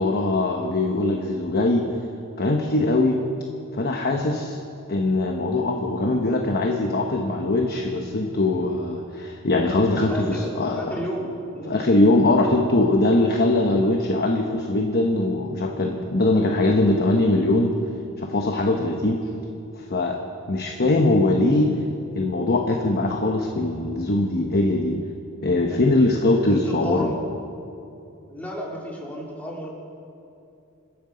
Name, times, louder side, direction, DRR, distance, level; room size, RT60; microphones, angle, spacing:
voice 1, 0.0-1.8 2.4-3.2 3.7-4.6 4.9-10.8 11.7-17.7 18.2-19.2 19.7-20.2 20.5-21.7 22.1-25.0 25.4-27.1, left 2 dB, 45° left, 2 dB, 1.0 m, -21 dB
voice 2, 10.1-11.8 25.7-26.1 26.5-27.2 28.3-29.7, equal, 5° left, -3 dB, 2.8 m, -33 dB
27.5 x 9.5 x 5.1 m, 2.7 s
head